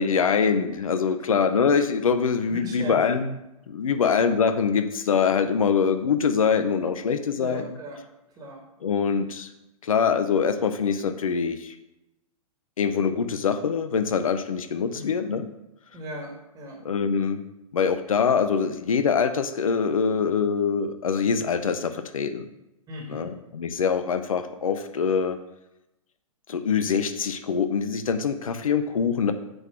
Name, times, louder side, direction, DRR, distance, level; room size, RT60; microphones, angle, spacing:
voice 1, 0.0-3.3 3.7-7.6 8.8-9.5 9.8-11.8 12.8-15.5 16.8-17.4 17.7-22.4 23.1-25.4 26.5-29.3, left 6 dB, 70° left, 10 dB, 0.6 m, -24 dB
voice 2, 2.5-3.2 7.4-8.0 8.4-8.6 14.9-15.3 15.9-16.8 22.9-23.3, equal, 20° right, -1 dB, 1.8 m, -38 dB
7.9 x 3.8 x 5.9 m, 0.92 s
figure-of-eight pair, 110°, 18 cm